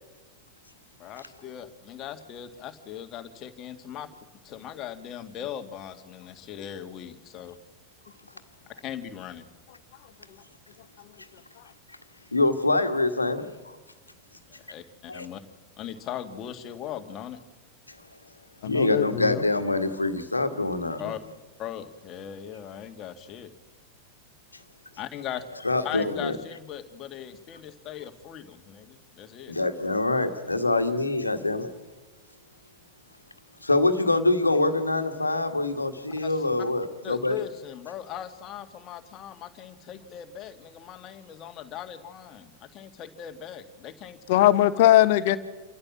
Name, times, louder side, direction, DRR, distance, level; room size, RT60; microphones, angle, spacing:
voice 1, 1.0-4.1 4.4-7.6 8.8-9.5 14.5-15.4 15.8-17.4 21.0-21.2 21.6-23.5 25.0-25.4 25.8-29.5 36.2-36.4 37.0-44.2, left 10 dB, 35° left, 8 dB, 2.0 m, -39 dB
voice 2, 12.3-13.8 15.1-15.3 18.6-21.0 25.6-26.3 29.5-31.7 33.6-37.4, left 2 dB, 80° left, 7 dB, 1.7 m, -25 dB
voice 3, 18.6-19.4 44.3-45.4, left 13 dB, 50° left, 13 dB, 1.2 m, -20 dB
28.5 x 14.5 x 7.4 m, 1.2 s
figure-of-eight pair, 90°, 0 cm